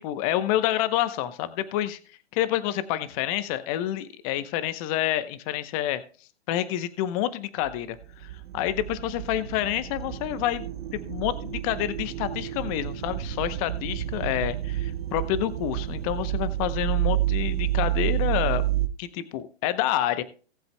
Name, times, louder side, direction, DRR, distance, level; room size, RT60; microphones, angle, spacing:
voice 1, 0.0-2.0 2.3-6.0 6.5-10.6 10.9-18.6 19.0-20.2, left 12 dB, 35° left, 13 dB, 0.9 m, -28 dB
sound 1, 7.6-18.9, right 13 dB, 65° right, 1.1 m, -29 dB
18.5 x 7.9 x 2.2 m, 0.39 s
hypercardioid pair, 130°, 32 cm